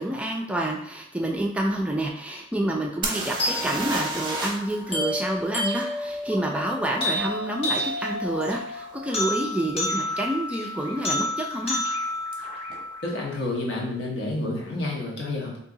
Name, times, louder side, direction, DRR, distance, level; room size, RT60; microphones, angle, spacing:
voice 1, 0.0-11.8, right 1 dB, 5° right, 0 dB, 0.3 m, -28 dB
sound 1, 3.0-4.7 5.0-5.1 8.5-8.6 9.3-9.4 9.7-10.3 12.3-12.4 12.7-12.8, right 2 dB, 25° right, 0.7 m, -31 dB
sound 2, 3.4-13.4, left 1 dB, 35° left, 0.8 m, -30 dB
voice 2, 13.0-15.6, left 2 dB, 70° left, -2 dB, 1.0 m, -29 dB
2.8 x 2.7 x 3.7 m, 0.72 s
head